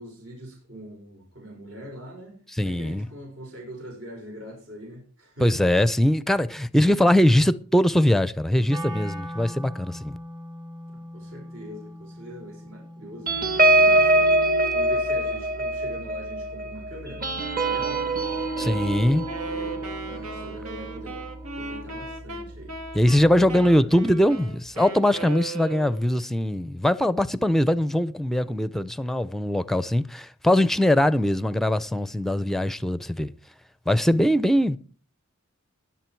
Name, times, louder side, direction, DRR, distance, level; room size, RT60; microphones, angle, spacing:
voice 1, 0.0-5.7 10.9-17.2 17.6-18.0 18.6-18.8 19.5-21.3 21.6-22.7 23.4-23.9 33.9-34.1, equal, 65° right, 6.0 m, -42 dB
voice 2, 2.5-3.1 5.4-10.2 18.6-19.3 22.9-33.3 33.9-34.8, left 1 dB, ahead, 0.5 m, -21 dB
Wind instrument woodwind instrument, 8.7-14.7, equal, 20° right, 1.6 m, -39 dB
sound 1, 13.3-22.2 22.6-22.8 23.1-23.4, right 2 dB, 45° right, 2.2 m, -24 dB
Wind instrument woodwind instrument 2, 19.2-26.2, right 3 dB, 85° right, 2.3 m, -37 dB
21.0 x 7.6 x 4.6 m
head